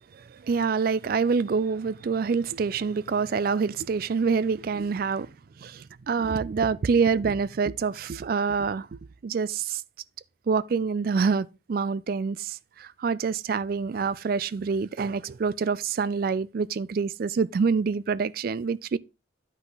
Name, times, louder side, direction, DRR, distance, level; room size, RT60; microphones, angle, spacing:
voice 1, 0.4-5.3 5.6-8.9 9.2-9.8 10.5-19.0, right 5 dB, 50° right, 0.3 m, -26 dB
9.7 x 5.7 x 3.9 m
head